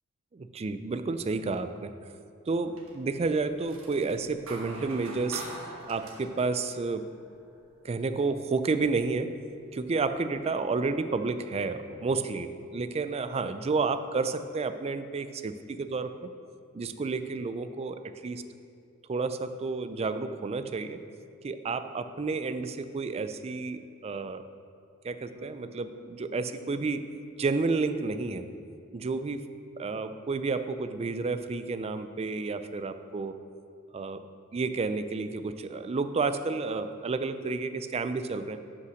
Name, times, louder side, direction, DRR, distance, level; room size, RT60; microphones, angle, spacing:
voice 1, 0.3-2.2 2.5-5.4 5.9-7.1 7.8-9.4 9.7-16.3 16.7-18.4 19.1-21.0 21.4-24.5 25.0-27.1 27.4-28.5 28.9-29.5 29.8-33.3 33.9-34.2 34.5-38.6, right 4 dB, 30° right, 10 dB, 0.4 m, -31 dB
sound 1, 2.6-3.1 3.4-7.6 9.1-9.2 9.8-10.4, right 2 dB, 75° right, 1.4 m, -45 dB
Bass guitar, 25.3-29.5, right 2 dB, 55° right, 1.8 m, -56 dB
8.1 x 5.6 x 6.2 m, 2.4 s
head